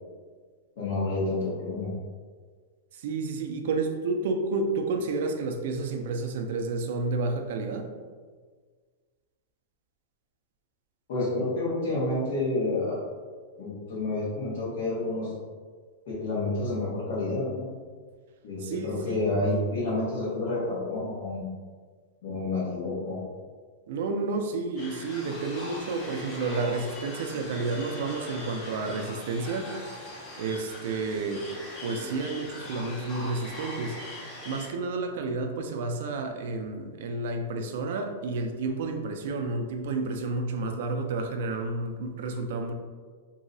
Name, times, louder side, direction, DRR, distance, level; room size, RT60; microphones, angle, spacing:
voice 1, 0.8-1.9 11.1-13.0 13.6-15.3 16.1-17.7 18.4-21.4 22.2-23.2, left 2 dB, 55° left, -10 dB, 1.1 m, -29 dB
voice 2, 2.9-7.9 18.6-19.3 23.9-29.8 30.4-31.5 31.8-42.7, right 3 dB, 50° right, 5 dB, 0.4 m, -31 dB
sound 1, 24.8-34.7, left 1 dB, 20° left, 0.6 m, -41 dB
3.0 x 2.7 x 2.6 m, 1.5 s
supercardioid pair, 180°, 0 cm